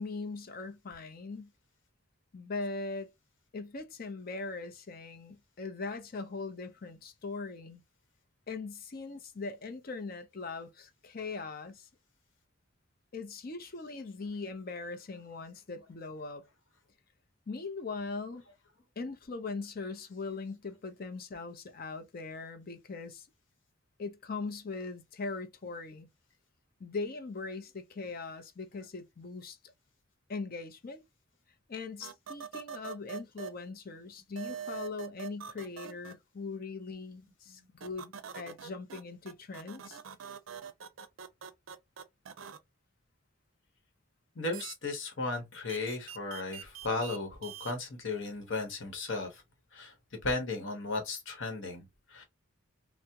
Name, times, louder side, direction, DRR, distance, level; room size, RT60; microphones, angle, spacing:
voice 1, 0.0-1.5 2.3-3.1 3.5-7.8 8.5-11.9 13.1-16.5 17.5-18.4 19.0-23.3 24.0-26.1 26.8-29.6 30.3-31.0 31.7-40.0, left 3 dB, 45° left, 0.5 m, -40 dB
sound 1, 32.0-33.5 34.4-36.1 37.8-39.0 39.3-42.6 44.5-44.8 45.7-47.2 47.4-47.7, right 8 dB, 70° right, 0.4 m, -43 dB
voice 2, 44.4-49.4 49.7-49.9 50.2-52.2, left 3 dB, 65° left, 1.0 m, -35 dB
3.4 x 2.0 x 2.7 m
head